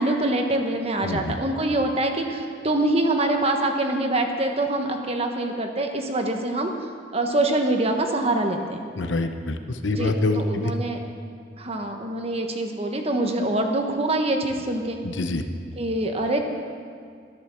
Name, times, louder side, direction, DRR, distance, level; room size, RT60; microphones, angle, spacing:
voice 1, 0.0-6.7 7.1-8.8 9.9-11.0 11.6-15.0 15.8-16.4, right 2 dB, 35° right, 4 dB, 1.3 m, -25 dB
voice 2, 1.0-1.4 9.0-10.7 15.0-15.4, left 2 dB, 85° left, 7 dB, 0.9 m, -26 dB
12.0 x 11.5 x 7.1 m, 2.2 s
head